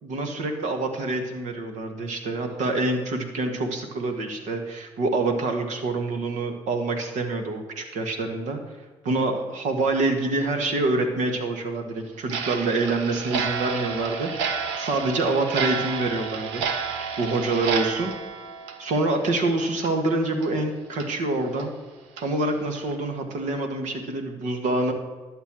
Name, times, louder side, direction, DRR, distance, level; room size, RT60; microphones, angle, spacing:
voice 1, 0.0-8.6 9.0-16.6 17.2-18.1 18.8-21.7 22.2-24.9, right 2 dB, 70° right, 5 dB, 1.8 m, -26 dB
Clock, 12.3-19.5 19.8-19.9 20.4-20.5 21.0-21.1 21.6-21.7 22.2-22.3 22.7-22.9, right 6 dB, 90° right, 0.8 m, -31 dB
12.0 x 6.9 x 6.1 m, 1.3 s
hypercardioid pair, 50°, 13 cm